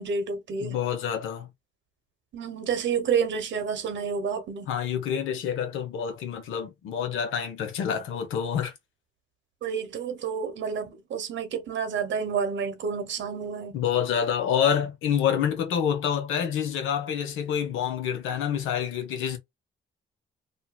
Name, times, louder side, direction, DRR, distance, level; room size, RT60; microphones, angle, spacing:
voice 1, 0.0-0.8 2.3-4.7 9.6-13.8, right 6 dB, 65° right, 1.1 m, -29 dB
voice 2, 0.6-1.5 4.7-8.7 13.7-19.4, left 8 dB, 85° left, 1.0 m, -27 dB
2.8 x 2.5 x 2.4 m
cardioid pair, 90°, 20 cm